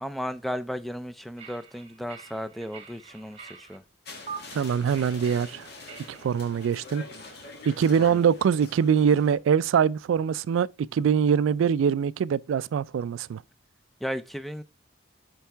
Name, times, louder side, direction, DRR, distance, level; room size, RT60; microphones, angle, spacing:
voice 1, 0.0-3.8 8.1-8.3 14.0-14.6, equal, ahead, 0.4 m, -34 dB
sound 1, 1.4-3.8 4.3-4.4 5.0-6.7, right 6 dB, 30° right, 1.4 m, -45 dB
sound 2, 4.0-9.4, left 3 dB, 50° left, 1.5 m, -44 dB
voice 2, 4.5-5.7 6.1-7.1 7.7-13.4, right 7 dB, 80° right, 0.3 m, -23 dB
8.8 x 4.7 x 3.4 m
head